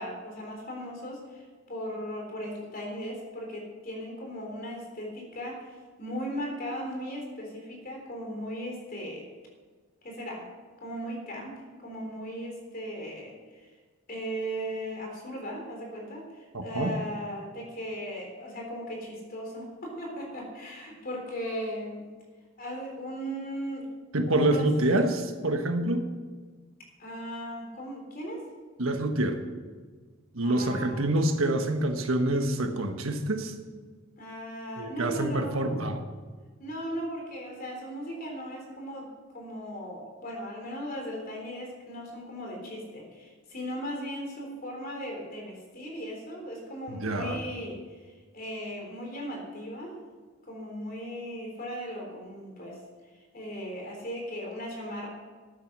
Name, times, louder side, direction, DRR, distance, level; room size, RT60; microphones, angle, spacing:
voice 1, 0.0-9.3 10.0-10.5 10.8-13.7 14.1-22.1 22.6-23.9 24.3-24.7 27.0-28.4 30.4-31.1 34.2-35.6 36.6-48.0 48.3-50.0 50.5-52.8 53.3-55.1, equal, 45° left, 0 dB, 3.7 m, -37 dB
voice 2, 16.5-16.9 24.1-26.1 28.8-29.4 30.3-33.5 34.8-36.0 46.9-47.4, right 1 dB, 80° right, 6 dB, 1.4 m, -26 dB
13.0 x 9.4 x 6.1 m, 1.5 s
head